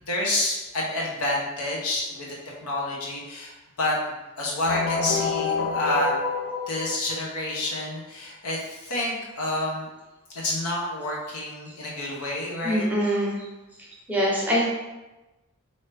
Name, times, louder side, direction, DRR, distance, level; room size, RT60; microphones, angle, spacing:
voice 1, 0.1-2.4 2.6-3.5 3.8-6.1 6.7-9.9 10.3-12.8, left 1 dB, 85° left, -3 dB, 0.9 m, -28 dB
sound 1, 4.7-7.5, left 4 dB, 65° left, 0.4 m, -28 dB
voice 2, 12.6-13.4 14.1-14.6, equal, 5° right, -5 dB, 0.7 m, -23 dB
3.2 x 2.7 x 3.3 m, 1.1 s
head